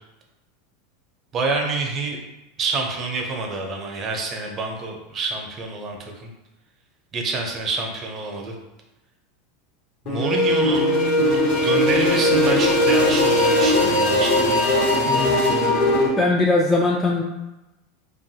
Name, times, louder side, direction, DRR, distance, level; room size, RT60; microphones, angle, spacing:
voice 1, 1.3-2.2 2.6-6.3 7.1-8.5 10.0-14.5, right 3 dB, 35° right, 1 dB, 0.6 m, -27 dB
sound 1, 10.1-16.1, left 1 dB, 55° left, 0.8 m, -19 dB
voice 2, 15.1-15.4 16.2-17.2, left 2 dB, 15° left, -2 dB, 0.3 m, -20 dB
2.6 x 2.3 x 2.7 m, 0.99 s
hypercardioid pair, 95°, 0 cm